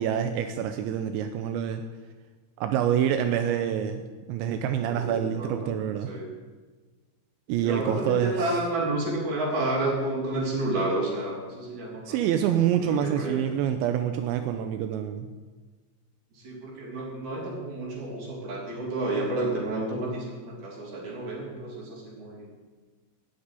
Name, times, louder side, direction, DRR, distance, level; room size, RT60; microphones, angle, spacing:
voice 1, 0.0-1.8 2.6-4.0 4.3-6.1 7.5-8.5 12.1-15.3, right 9 dB, 85° right, 7 dB, 2.9 m, -26 dB
voice 2, 4.9-5.7 6.1-6.3 7.6-12.2 12.9-13.5 16.3-22.5, right 2 dB, 45° right, -2 dB, 4.2 m, -30 dB
16.0 x 6.2 x 9.7 m, 1.3 s
omnidirectional pair, 5.4 m